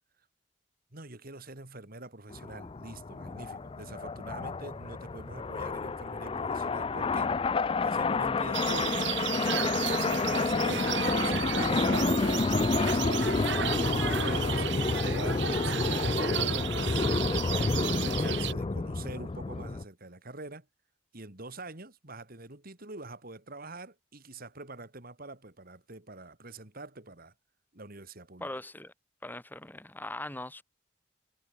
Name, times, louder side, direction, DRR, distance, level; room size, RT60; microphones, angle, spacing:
voice 1, 0.9-7.3 7.8-12.2 12.7-13.1 13.7-16.7 17.6-20.7 21.1-27.3 27.7-28.5, right 2 dB, 50° right, 3.1 m, -45 dB
sound 1, 2.3-19.8, left 3 dB, 25° left, 0.4 m, -29 dB
sound 2, 8.5-18.5, right 9 dB, 65° right, 1.3 m, -34 dB
voice 2, 28.4-28.9 29.2-30.6, left 1 dB, 10° left, 2.4 m, -40 dB
head